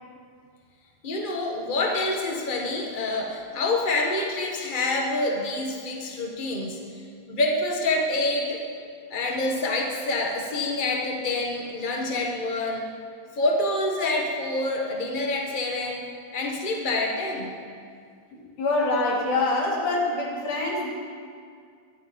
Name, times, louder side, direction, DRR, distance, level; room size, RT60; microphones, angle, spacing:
voice 1, 1.0-8.6 9.1-12.9 13.3-16.0 16.3-17.5, left 2 dB, 45° left, 0 dB, 0.6 m, -27 dB
voice 2, 18.3-20.9, left 2 dB, 85° left, -2 dB, 4.7 m, -25 dB
23.0 x 11.0 x 5.2 m, 2.2 s
omnidirectional pair, 3.5 m